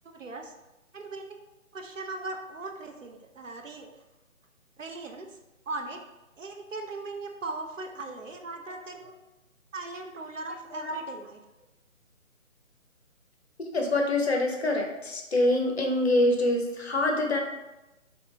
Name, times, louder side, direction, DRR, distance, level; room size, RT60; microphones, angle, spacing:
voice 1, 0.0-0.5 0.9-1.4 1.7-3.9 4.8-5.4 5.7-6.0 6.4-9.1 9.7-11.4, right 3 dB, 70° right, 4 dB, 0.6 m, -39 dB
voice 2, 13.6-17.4, left 1 dB, 50° left, 2 dB, 0.7 m, -25 dB
4.3 x 2.7 x 2.8 m, 1.0 s
figure-of-eight pair, 150°, 40 cm